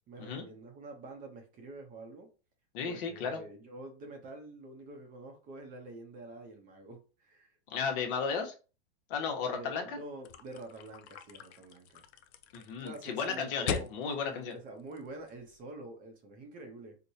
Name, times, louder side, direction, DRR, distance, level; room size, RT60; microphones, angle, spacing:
voice 1, 0.1-2.3 2.8-7.6 9.4-12.0 12.8-13.9 14.3-17.0, right 2 dB, 25° right, 3 dB, 0.7 m, -47 dB
voice 2, 2.7-3.4 7.7-8.5 9.1-10.0 12.5-14.5, left 5 dB, 50° left, 3 dB, 1.0 m, -34 dB
sound 1, 10.2-15.6, left 7 dB, 70° left, 0.6 m, -41 dB
4.5 x 2.2 x 2.7 m, 0.34 s
supercardioid pair, 140°, 34 cm